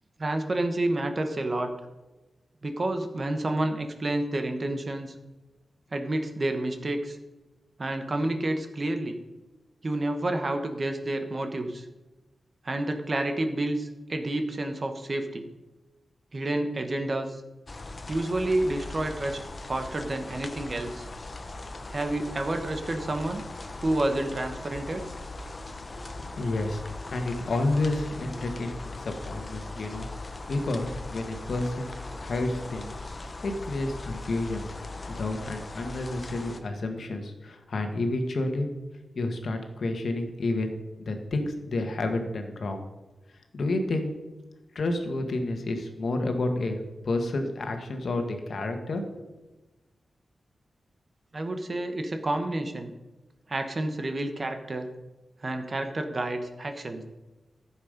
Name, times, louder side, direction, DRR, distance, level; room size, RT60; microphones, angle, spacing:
voice 1, 0.2-1.7 2.6-5.1 5.9-7.2 7.8-9.2 9.8-11.9 12.6-15.5 16.3-17.4 18.1-19.4 19.7-21.1 21.9-23.4 23.8-25.1 51.3-52.9 53.5-54.9 55.4-57.0, right 1 dB, 35° right, 6 dB, 1.1 m, -29 dB
sound 1, 17.7-36.6, left 2 dB, 30° left, 0.9 m, -40 dB
voice 2, 26.0-26.8 27.1-30.1 30.5-33.0 33.4-34.6 35.1-38.7 39.1-42.8 43.5-44.1 44.7-46.8 47.0-49.2, left 2 dB, 60° left, 5 dB, 1.6 m, -30 dB
14.5 x 7.3 x 5.2 m, 1.1 s
wide cardioid pair, 145°, 0 cm